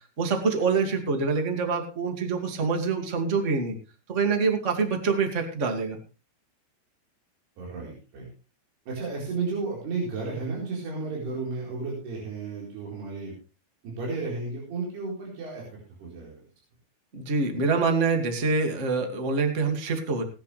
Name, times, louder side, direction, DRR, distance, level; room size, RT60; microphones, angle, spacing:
voice 1, 0.2-3.7 4.1-6.0 17.1-20.2, right 4 dB, 25° right, 4 dB, 1.5 m, -25 dB
voice 2, 7.6-8.3 8.9-13.3 13.8-15.6 16.0-16.5, right 3 dB, 70° right, -4 dB, 6.4 m, -33 dB
18.5 x 10.5 x 3.3 m, 0.34 s
omnidirectional pair, 4.9 m